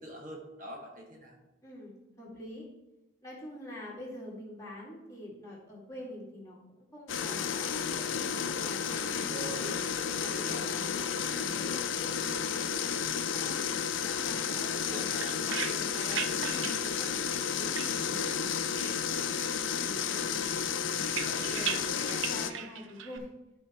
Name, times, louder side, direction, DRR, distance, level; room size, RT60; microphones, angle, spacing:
voice 1, 0.0-1.4 9.2-9.8 10.3-10.7 14.8-15.4 21.2-21.8, right 2 dB, 40° right, 0 dB, 1.3 m, -44 dB
voice 2, 1.6-2.7 3.2-9.7 10.1-13.6 14.0-17.1 17.5-20.9 21.4-23.3, left 1 dB, 15° left, -5 dB, 2.3 m, -46 dB
sound 1, 7.1-22.5, left 7 dB, 85° left, 0.6 m, -32 dB
sound 2, 14.8-18.5 18.8-19.6 19.9-23.2, right 7 dB, 80° right, 0.7 m, -39 dB
12.5 x 4.4 x 4.3 m, 1.0 s
head